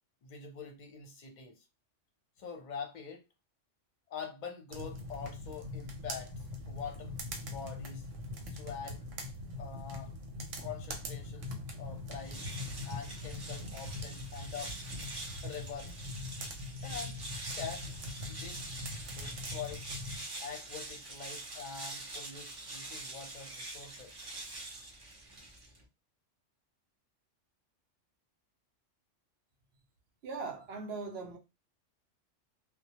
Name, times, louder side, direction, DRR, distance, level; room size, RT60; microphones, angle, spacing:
voice 1, 0.2-1.6 2.4-3.2 4.1-6.3 6.7-7.1 7.4-8.1 8.5-9.0 9.6-10.1 10.6-11.5 11.8-12.5 12.8-15.1 15.4-15.9 16.8-17.2 17.6-18.6 19.0-19.9 20.4-24.1, left 6 dB, 45° left, 0.7 m, -45 dB
sound 1, 4.7-20.2, left 2 dB, 90° right, 1.0 m, -42 dB
sound 2, 12.2-25.8, right 2 dB, 40° right, 0.3 m, -45 dB
voice 2, 30.2-31.4, right 4 dB, 65° right, 0.7 m, -39 dB
2.1 x 2.1 x 2.8 m
omnidirectional pair, 1.3 m